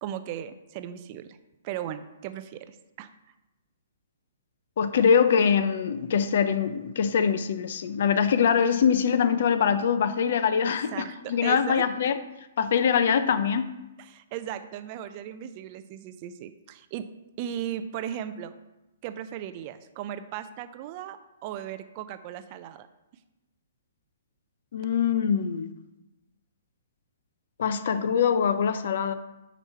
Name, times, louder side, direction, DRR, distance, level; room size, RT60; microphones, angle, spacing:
voice 1, 0.0-1.4 1.6-3.1 10.9-11.9 14.0-17.1 17.4-18.5 19.0-22.9, right 10 dB, 40° right, 11 dB, 0.5 m, -37 dB
voice 2, 4.8-12.2 12.6-13.7 24.7-25.7 27.6-29.1, left 7 dB, 60° left, 12 dB, 0.6 m, -23 dB
9.0 x 3.1 x 5.5 m, 0.98 s
hypercardioid pair, 140°, 0 cm